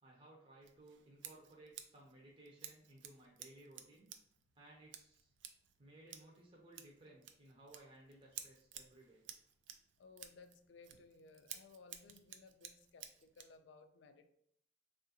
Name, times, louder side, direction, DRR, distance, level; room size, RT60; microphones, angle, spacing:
voice 1, 0.0-4.1 4.6-5.3 5.8-9.2, right 1 dB, 30° right, -3 dB, 0.6 m, -60 dB
Scissors, 0.6-13.6, right 9 dB, 75° right, 0.4 m, -55 dB
voice 2, 10.0-14.3, left 4 dB, 70° left, 8 dB, 0.4 m, -60 dB
3.6 x 2.4 x 2.7 m, 0.70 s
head